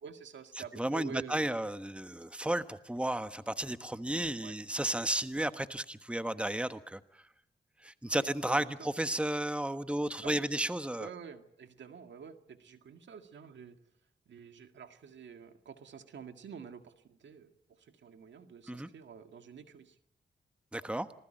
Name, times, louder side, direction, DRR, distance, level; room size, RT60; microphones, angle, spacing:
voice 1, 0.0-1.6 4.4-4.6 8.1-8.6 10.2-10.5 11.0-13.8 14.3-20.0 20.8-21.0, right 7 dB, 90° right, 7 dB, 2.0 m, -49 dB
voice 2, 0.7-7.2 7.8-11.1 18.7-18.9 20.7-21.1, right 1 dB, 5° right, 11 dB, 1.2 m, -33 dB
26.5 x 19.5 x 9.0 m, 0.71 s
cardioid pair, 85°, 18 cm